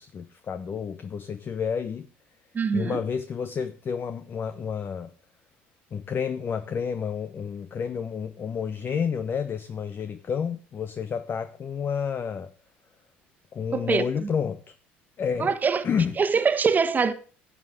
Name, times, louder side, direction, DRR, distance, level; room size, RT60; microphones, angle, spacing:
voice 1, 0.0-2.1 2.7-5.1 5.9-12.5 13.5-14.6 15.2-15.5 15.8-16.2, left 7 dB, 40° left, 0.8 m, -30 dB
voice 2, 2.5-3.0 13.7-14.0 15.4-15.8 16.2-17.1, right 5 dB, 30° right, 1.4 m, -23 dB
11.5 x 7.6 x 4.9 m
hypercardioid pair, 70°, 6 cm